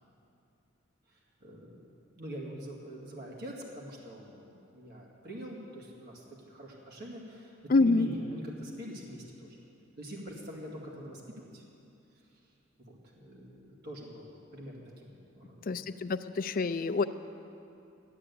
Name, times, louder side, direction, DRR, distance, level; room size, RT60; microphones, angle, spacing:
voice 1, 1.1-1.8 2.1-9.6 10.0-11.6 12.8-15.8, equal, 55° right, -3 dB, 2.2 m, -45 dB
voice 2, 7.7-8.1 15.7-17.0, left 3 dB, 45° left, 11 dB, 0.4 m, -26 dB
13.0 x 8.8 x 8.4 m, 2.8 s
head